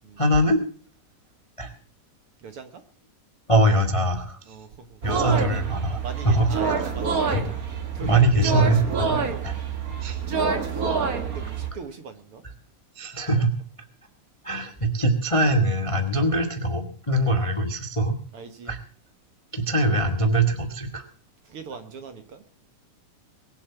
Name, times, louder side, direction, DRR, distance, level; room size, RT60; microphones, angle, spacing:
voice 1, 0.2-0.6 1.6-1.7 3.5-4.4 5.0-6.0 6.2-6.5 7.3-7.4 8.0-9.2 9.4-9.5 10.0-10.2 13.0-13.6 14.4-18.1 18.7-18.8 19.5-21.0, right 1 dB, 20° left, 5 dB, 0.8 m, -22 dB
voice 2, 2.4-2.8 4.5-5.4 6.0-7.5 7.9-8.4 9.2-9.4 10.6-12.4 14.5-14.8 18.3-18.7 21.4-22.4, right 5 dB, 55° right, 8 dB, 1.9 m, -41 dB
sound 1, 5.0-11.7, right 5 dB, 35° right, 1.7 m, -27 dB
22.5 x 7.6 x 7.2 m, 0.43 s
omnidirectional pair, 3.6 m